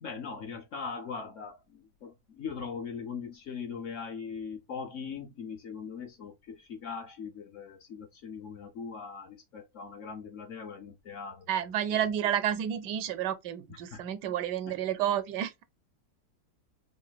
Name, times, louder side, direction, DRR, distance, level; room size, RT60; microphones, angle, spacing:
voice 1, 0.0-11.5 11.9-12.0 13.7-14.0, left 5 dB, 65° left, 0.8 m, -40 dB
voice 2, 11.5-15.6, right 10 dB, 90° right, 1.2 m, -30 dB
3.2 x 2.4 x 3.8 m
omnidirectional pair, 1.8 m